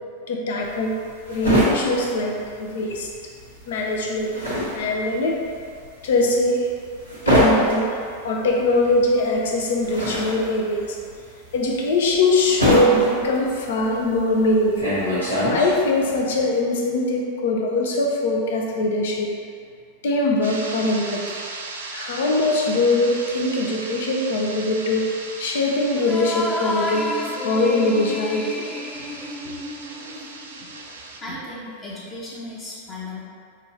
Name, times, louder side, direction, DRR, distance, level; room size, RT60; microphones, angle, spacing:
voice 1, 0.3-0.9 1.3-3.1 3.7-4.3 4.7-5.4 6.0-6.7 7.3-8.0 8.2-11.0 11.5-14.8 15.5-19.3 20.0-21.4 21.9-25.0 25.4-27.1 27.4-28.7, left 2 dB, 60° left, 0 dB, 0.6 m, -22 dB
sound 1, 0.6-3.1 3.4-16.0, equal, 90° left, 1.2 m, -24 dB
sound 2, 20.4-31.2, right 3 dB, 65° right, 0.5 m, -37 dB
sound 3, 26.0-30.7, left 1 dB, 10° left, 0.3 m, -30 dB
voice 2, 31.2-33.2, left 2 dB, 25° left, -7 dB, 0.8 m, -35 dB
5.6 x 2.6 x 3.2 m, 2.2 s
figure-of-eight pair, 90°, 0 cm